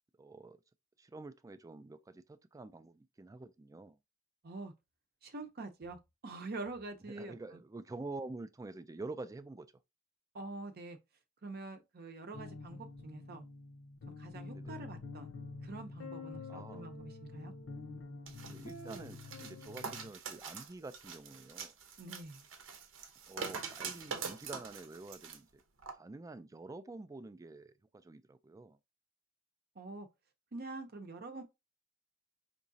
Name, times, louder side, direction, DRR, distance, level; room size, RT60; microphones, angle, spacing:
voice 1, 0.2-0.6 1.0-4.0 7.1-9.7 14.5-14.8 16.5-16.9 18.5-21.7 23.3-25.6 25.9-28.8, right 2 dB, 15° right, 0.3 m, -47 dB
voice 2, 5.2-7.6 10.3-11.0 11.4-13.4 14.2-15.3 15.6-17.5 22.0-22.4 29.8-30.1 30.5-31.4, right 2 dB, 50° right, 0.7 m, -45 dB
sound 1, 12.3-20.1, left 3 dB, 75° left, 0.8 m, -47 dB
sound 2, 18.3-25.4 25.8-25.9, right 5 dB, 80° right, 0.8 m, -44 dB
4.7 x 3.0 x 2.6 m
head